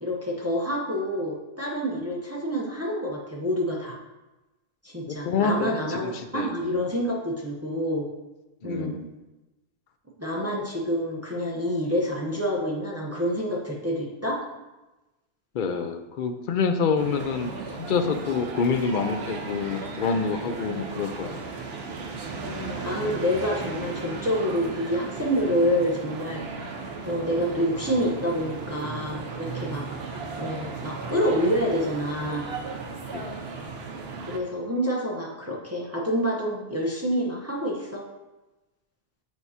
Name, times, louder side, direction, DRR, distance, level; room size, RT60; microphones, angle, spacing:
voice 1, 0.0-4.0 4.8-8.1 8.6-9.0 10.2-14.4 20.8-21.0 22.4-26.5 27.0-32.5 34.3-38.0, equal, 15° right, -3 dB, 0.7 m, -27 dB
voice 2, 5.2-6.5 8.6-9.1 15.5-21.4 26.6-26.7 33.1-33.3, left 5 dB, 60° left, 7 dB, 0.6 m, -27 dB
sound 1, 17.0-34.4, right 4 dB, 70° right, 1.0 m, -36 dB
7.9 x 4.6 x 2.7 m, 1.1 s
omnidirectional pair, 1.1 m